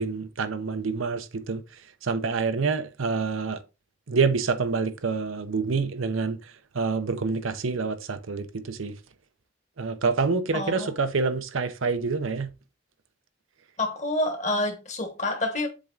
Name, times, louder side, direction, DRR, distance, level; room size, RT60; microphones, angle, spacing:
voice 1, 0.0-1.6 2.0-3.6 4.1-9.0 9.8-12.5, right 4 dB, 85° right, 0.7 m, -27 dB
voice 2, 10.5-10.9 13.8-15.7, left 1 dB, 35° left, 1.3 m, -28 dB
7.5 x 3.5 x 3.8 m
head